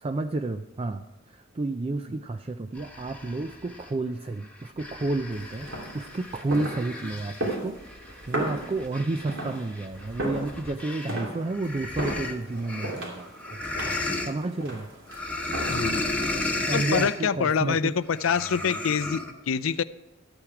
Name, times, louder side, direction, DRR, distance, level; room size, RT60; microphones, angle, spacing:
voice 1, 0.0-5.7 5.9-7.8 8.1-13.3 14.2-15.0 16.7-17.9, right 2 dB, 30° right, 7 dB, 0.4 m, -31 dB
sound 1, 2.8-3.9 4.4-11.2 11.5-14.3 15.1-17.2 18.1-19.3, left 2 dB, 5° left, 1.1 m, -34 dB
sound 2, 5.3-16.0, right 1 dB, 70° right, 3.0 m, -36 dB
voice 2, 15.7-16.0 16.7-19.8, left 6 dB, 85° left, 16 dB, 0.5 m, -26 dB
13.0 x 8.9 x 4.8 m, 1.0 s
head